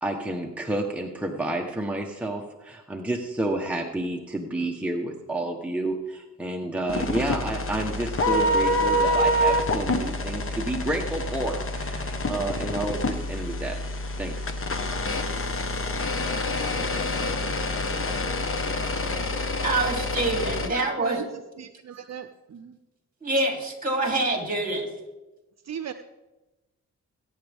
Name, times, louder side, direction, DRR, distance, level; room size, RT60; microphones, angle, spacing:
voice 1, 0.0-13.8 14.2-14.5, right 1 dB, 5° right, 1 dB, 1.2 m, -30 dB
sound 1, 6.9-20.7, left 1 dB, 45° left, 1.4 m, -27 dB
voice 2, 19.6-21.2 23.2-24.9, right 2 dB, 25° right, 1 dB, 3.4 m, -26 dB
voice 3, 20.7-21.2 21.6-22.7 25.7-25.9, right 8 dB, 60° right, 9 dB, 0.7 m, -37 dB
21.0 x 9.4 x 3.6 m, 1.1 s
cardioid pair, 75°, 31 cm